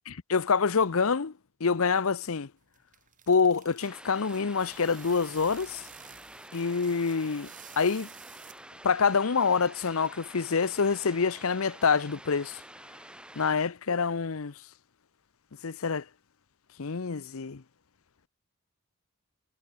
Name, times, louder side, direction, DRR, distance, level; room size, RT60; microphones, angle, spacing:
voice 1, 0.1-1.3 1.6-2.5 3.3-5.8 6.5-7.5 7.8-8.1 8.8-12.6 13.4-14.5 15.6-16.0 16.8-17.6, left 5 dB, 70° left, 0.7 m, -26 dB
sound 1, 2.6-8.9, right 10 dB, 35° right, 7.0 m, -52 dB
sound 2, 3.8-13.6, right 1 dB, 5° right, 2.9 m, -48 dB
head